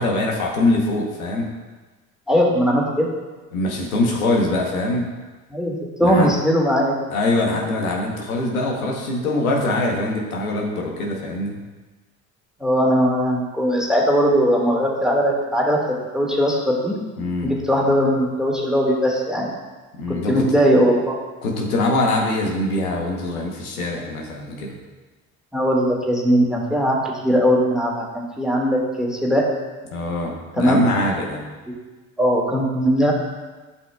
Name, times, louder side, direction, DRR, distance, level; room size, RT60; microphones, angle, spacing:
voice 1, 0.0-1.5 3.5-5.1 6.0-6.3 7.1-11.6 17.2-17.5 20.0-20.5 21.4-24.8 29.9-31.4, left 2 dB, 90° left, 0 dB, 1.1 m, -23 dB
voice 2, 2.3-3.1 5.5-6.9 12.6-15.8 16.1-16.9 17.4-19.5 20.1-21.2 25.5-27.0 27.2-29.4 30.6-30.9 31.7-31.8 32.2-33.1, equal, ahead, -2 dB, 1.8 m, -19 dB
11.0 x 5.4 x 2.3 m, 1.3 s
hypercardioid pair, 60°, 41 cm